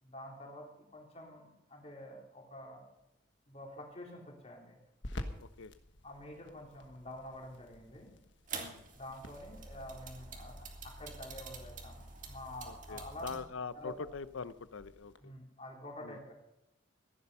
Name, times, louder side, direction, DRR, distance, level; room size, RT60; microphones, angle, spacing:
voice 1, 0.0-2.8 3.5-4.8 6.0-8.1 8.9-13.4 13.7-13.9 15.2-16.3, left 1 dB, 30° left, 0 dB, 3.5 m, -48 dB
sound 1, 3.0-15.2, left 1 dB, 65° left, 1.4 m, -52 dB
voice 2, 5.4-5.7 8.6-8.9 12.7-15.3 16.0-16.2, left 5 dB, 85° left, 16 dB, 0.6 m, -43 dB
sound 2, 8.5-13.4, right 4 dB, 40° right, 2.3 m, -47 dB
15.5 x 11.0 x 5.5 m, 0.86 s
head